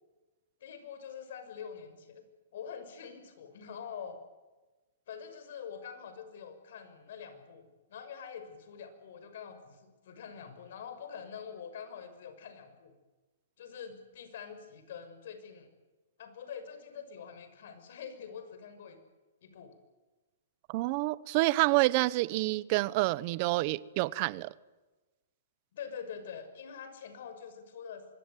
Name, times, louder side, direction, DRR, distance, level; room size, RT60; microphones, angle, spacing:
voice 1, 0.6-2.2 2.5-4.2 5.1-12.9 13.6-15.7 16.2-19.0 19.4-19.8 25.7-28.1, left 7 dB, 60° left, 6.1 m, -45 dB
voice 2, 20.7-24.5, right 21 dB, 40° right, 0.9 m, -28 dB
25.0 x 22.5 x 9.2 m
hypercardioid pair, 145°, 0 cm